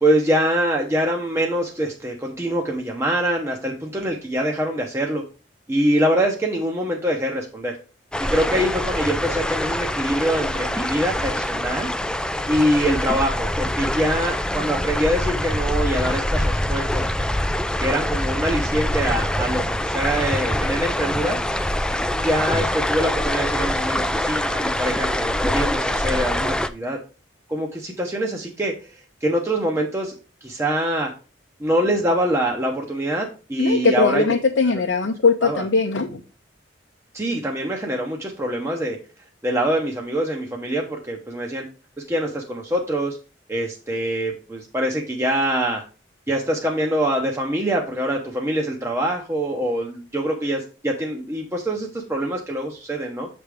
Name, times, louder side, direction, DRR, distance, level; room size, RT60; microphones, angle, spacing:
voice 1, 0.0-5.2 5.7-7.7 8.2-11.9 12.5-17.3 17.8-21.4 22.2-27.0 27.5-28.9 29.2-30.2 30.4-31.1 31.6-34.2 35.4-35.6 37.1-39.0 39.4-41.6 42.1-43.2 43.5-45.8 46.3-53.3, right 1 dB, 15° right, 0 dB, 0.7 m, -24 dB
sound 1, 8.1-26.7, left 1 dB, 5° left, 0.3 m, -24 dB
voice 2, 33.6-36.2, left 4 dB, 75° left, 3 dB, 0.6 m, -20 dB
7.1 x 3.4 x 4.8 m, 0.34 s
head